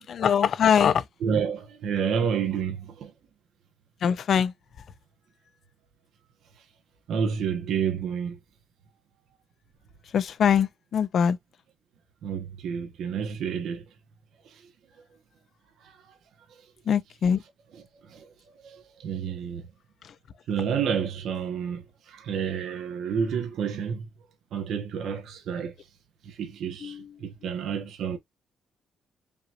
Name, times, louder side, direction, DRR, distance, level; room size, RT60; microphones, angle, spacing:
voice 1, 0.0-1.0 4.0-4.5 10.1-11.4 16.9-17.4 26.8-27.1, left 8 dB, 60° left, 0.6 m, -22 dB
voice 2, 1.2-3.1 7.1-8.4 12.2-13.8 15.8-16.0 18.1-18.3 18.6-19.6 20.5-24.1 24.5-25.7 26.2-28.2, right 7 dB, 75° right, 1.2 m, -29 dB
5.3 x 3.0 x 2.5 m
cardioid pair, 90°, 0 cm